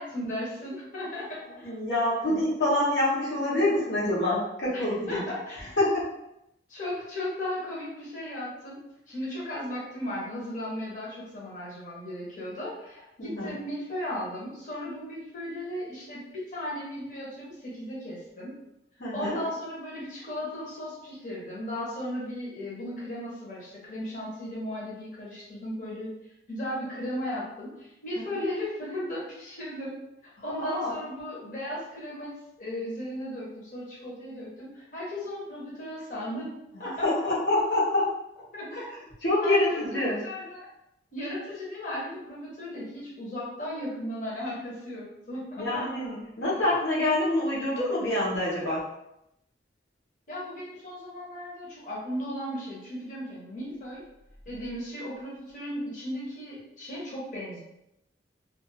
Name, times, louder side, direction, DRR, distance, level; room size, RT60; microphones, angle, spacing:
voice 1, 0.0-1.7 4.7-5.8 6.7-8.8 9.1-18.5 19.1-26.1 26.5-29.9 30.4-36.5 36.8-37.1 38.5-38.9 39.4-39.6 39.9-40.7 41.1-45.9 50.3-54.0 54.5-57.6, left 1 dB, 45° left, -6 dB, 0.8 m, -36 dB
voice 2, 1.6-5.2 5.8-6.1 13.2-13.5 19.0-19.4 28.2-28.3 30.6-30.9 37.0-38.1 39.2-40.2 45.6-48.8, left 1 dB, 75° left, -7 dB, 0.9 m, -26 dB
2.5 x 2.4 x 2.7 m, 0.82 s
head